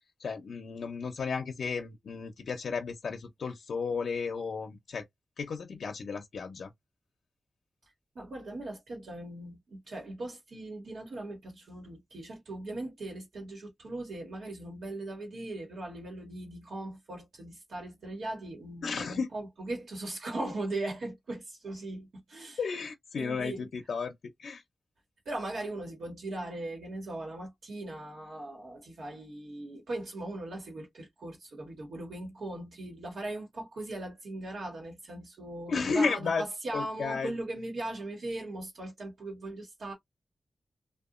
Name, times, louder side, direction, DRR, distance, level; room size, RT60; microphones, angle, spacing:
voice 1, 0.0-5.1 5.4-6.7 18.8-19.3 22.6-24.6 35.7-36.4 36.7-37.3, left 5 dB, 85° left, 0.5 m, -33 dB
voice 2, 8.1-22.6 23.2-23.7 25.2-39.9, right 2 dB, 85° right, 1.1 m, -39 dB
2.8 x 2.2 x 2.4 m
wide cardioid pair, 155°, 0 cm